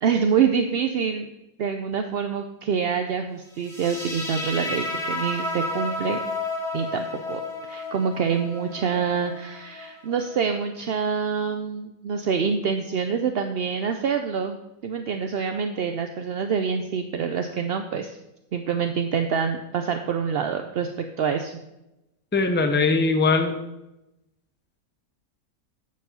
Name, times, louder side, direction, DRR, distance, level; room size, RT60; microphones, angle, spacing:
voice 1, 0.0-1.3 1.6-6.2 6.7-7.4 7.7-14.6 14.8-18.2 18.5-21.5, right 6 dB, 60° right, 6 dB, 0.6 m, -26 dB
sound 1, 3.6-10.6, left 2 dB, 45° left, 2.5 m, -32 dB
voice 2, 22.3-23.5, left 3 dB, 10° left, 6 dB, 0.6 m, -20 dB
9.2 x 5.3 x 6.8 m, 0.94 s
omnidirectional pair, 1.6 m